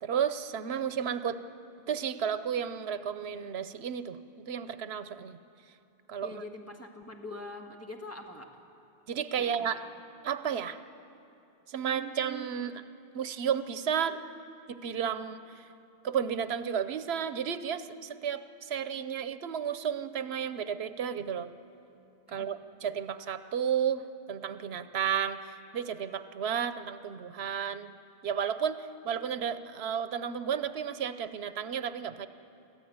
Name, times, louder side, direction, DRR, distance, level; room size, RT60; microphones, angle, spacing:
voice 1, 0.0-1.4 1.9-5.4 6.1-6.4 9.1-9.8 10.2-10.8 11.7-12.8 13.1-14.2 14.7-15.7 16.0-21.5 22.3-27.9 28.2-32.3, right 8 dB, 85° right, 12 dB, 1.0 m, -32 dB
voice 2, 6.2-8.6 9.4-9.9 22.3-22.5, left 2 dB, 15° left, 1 dB, 1.7 m, -44 dB
23.5 x 15.0 x 9.4 m, 2.8 s
omnidirectional pair, 1.0 m